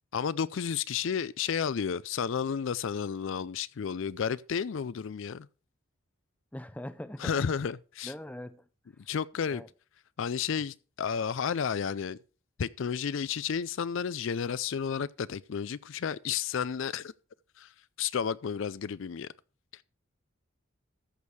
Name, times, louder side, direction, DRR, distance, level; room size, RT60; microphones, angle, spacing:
voice 1, 0.1-5.5 7.2-8.1 9.1-9.6 10.2-12.2 12.6-17.1 17.6-17.7 18.0-19.3, left 7 dB, 60° left, 0.4 m, -32 dB
voice 2, 6.5-7.4 8.0-8.7 9.5-9.7, left 1 dB, 5° left, 0.5 m, -41 dB
14.0 x 6.4 x 4.8 m
head